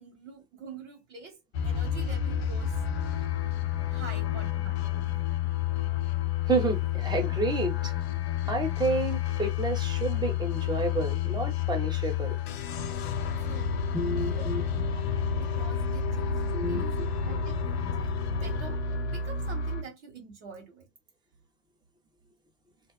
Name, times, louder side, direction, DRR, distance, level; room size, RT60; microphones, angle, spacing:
voice 1, 0.0-1.4 1.6-2.7 3.7-5.2 13.5-13.7 14.2-14.5 14.9-15.0 15.3-17.0 17.2-18.8 19.1-20.9, right 4 dB, 65° right, 1.5 m, -46 dB
sound 1, 1.5-19.8, left 8 dB, 55° left, 0.6 m, -30 dB
voice 2, 6.5-7.9 8.5-12.4 13.9-14.6 16.5-16.8, right 2 dB, 10° right, 0.8 m, -30 dB
2.6 x 2.3 x 2.2 m
hypercardioid pair, 95°, 38 cm